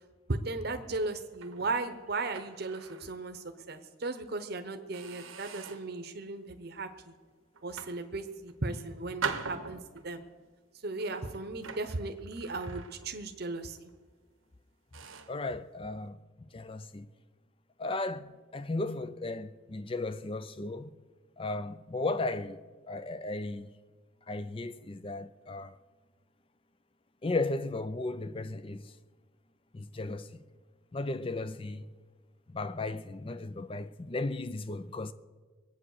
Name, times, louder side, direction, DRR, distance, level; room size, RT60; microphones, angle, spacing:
voice 1, 0.3-7.2 7.6-10.2 10.8-13.9, right 3 dB, 50° right, 0.9 m, -36 dB
sound 1, 1.3-3.1 3.6-3.7 4.3-4.5 4.9-6.0 6.5-6.9 7.5-8.6 9.2-10.2 11.0-13.3 13.6-13.9 14.5-14.6 14.9-15.4, right 5 dB, 80° right, 1.1 m, -42 dB
voice 2, 15.3-17.1 17.8-20.9 21.4-23.7 24.3-25.8 27.2-28.9 29.7-30.4 30.9-31.9 32.5-35.1, left 2 dB, 25° left, 0.4 m, -35 dB
22.0 x 8.7 x 6.5 m
head